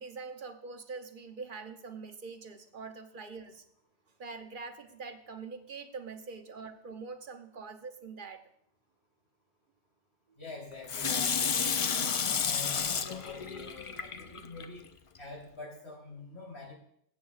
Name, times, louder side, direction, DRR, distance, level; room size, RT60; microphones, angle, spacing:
voice 1, 0.0-3.6 4.2-8.5, right 4 dB, 55° right, 7 dB, 1.0 m, -44 dB
voice 2, 10.4-11.5 11.8-14.9 15.2-16.7, left 3 dB, 85° left, -2 dB, 3.7 m, -46 dB
Water tap faucet / Sink (filling or washing), 10.9-14.6 15.1-15.2, left 6 dB, 45° left, 0.4 m, -31 dB
20.5 x 8.4 x 2.4 m, 0.69 s
omnidirectional pair, 1.0 m